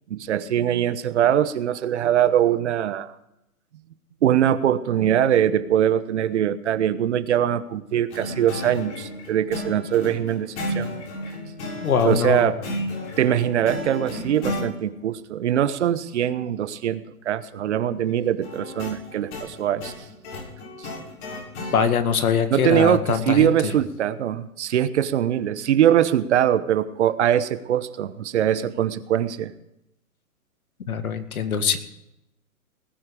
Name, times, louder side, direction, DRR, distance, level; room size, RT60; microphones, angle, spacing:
voice 1, 0.1-3.1 4.2-10.9 12.0-12.6 13.2-19.9 20.8-20.9 22.5-29.5, right 10 dB, 50° right, 14 dB, 1.0 m, -22 dB
sound 1, 8.1-14.7 18.4-21.8, left 1 dB, 50° left, 7.4 m, -33 dB
voice 2, 11.8-12.5 21.7-23.8 30.9-31.8, left 6 dB, 70° left, 9 dB, 2.1 m, -22 dB
19.5 x 10.5 x 4.9 m, 0.86 s
hypercardioid pair, 145°, 44 cm